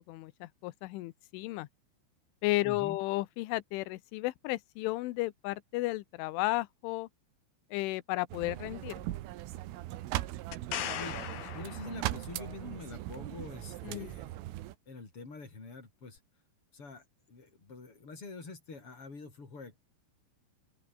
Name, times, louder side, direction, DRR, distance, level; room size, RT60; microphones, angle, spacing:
voice 1, 0.0-1.7 2.4-7.1 7.7-9.1 13.8-14.1, left 19 dB, 85° left, 3.3 m, -33 dB
voice 2, 2.6-3.0 11.0-14.4 14.9-16.2 16.7-19.8, left 3 dB, 30° left, 6.8 m, -46 dB
sound 1, 8.3-14.7, right 15 dB, 90° right, 3.9 m, -39 dB
sound 2, 10.5-12.5 16.2-16.3, left 10 dB, 55° left, 3.4 m, -39 dB
open air
omnidirectional pair, 5.5 m